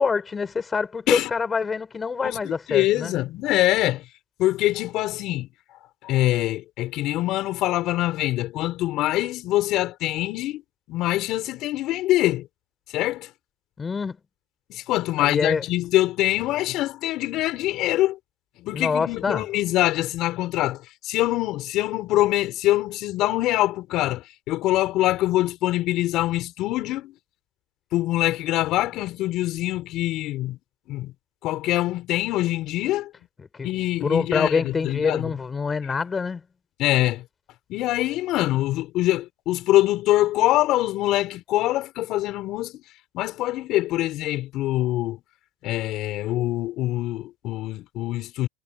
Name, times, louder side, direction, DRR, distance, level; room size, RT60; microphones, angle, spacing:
voice 1, 0.0-3.2 13.8-14.2 15.2-15.6 18.7-19.4 33.4-33.7 34.0-36.4, left 5 dB, 20° left, 6.1 m, -25 dB
voice 2, 2.2-4.0 4.4-5.5 6.0-10.6 10.9-12.5 12.9-13.3 14.7-18.2 18.6-20.8 21.0-27.1 27.9-30.6 30.9-31.1 31.4-33.1 33.6-35.3 36.8-37.2 37.7-42.8 43.1-45.2 45.6-48.5, left 16 dB, 50° left, 5.7 m, -24 dB
supercardioid pair, 140°, 0 cm